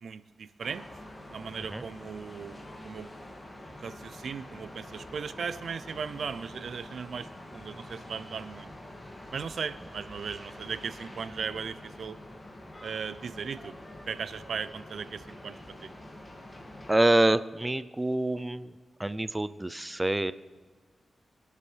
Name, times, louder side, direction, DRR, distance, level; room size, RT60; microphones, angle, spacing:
voice 1, 0.0-0.8 1.3-3.1 3.8-8.7 9.3-12.2 12.8-13.7 14.1-15.9, right 6 dB, 75° right, 14 dB, 0.5 m, -37 dB
sound 1, 0.6-17.0, left 1 dB, 25° left, 2.2 m, -46 dB
voice 2, 16.9-18.7 19.0-20.3, right 1 dB, 15° right, 14 dB, 0.5 m, -26 dB
25.0 x 11.5 x 3.4 m, 1.4 s
cardioid pair, 80°, 0 cm